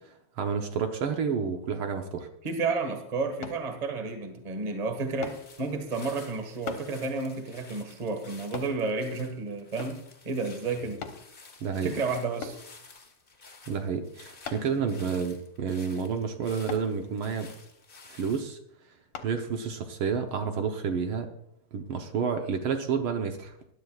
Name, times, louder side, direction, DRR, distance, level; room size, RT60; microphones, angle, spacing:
voice 1, 0.4-2.3 11.6-11.9 13.7-17.5 18.1-18.6 19.2-21.3 21.7-23.5, right 6 dB, 65° right, 5 dB, 1.4 m, -30 dB
voice 2, 2.4-11.0 11.8-12.6, right 3 dB, 30° right, 6 dB, 0.7 m, -31 dB
sound 1, 3.4-3.7 5.2-5.5 6.7-6.9 8.5-8.8 9.8-10.1 11.0-11.2 12.4-12.7 14.5-14.8 16.7-16.9 19.1-19.3 19.9-20.0, left 7 dB, 60° left, 2.0 m, -39 dB
sound 2, 5.0-18.4, left 4 dB, 75° left, 0.5 m, -52 dB
20.5 x 11.5 x 2.4 m, 0.73 s
omnidirectional pair, 3.3 m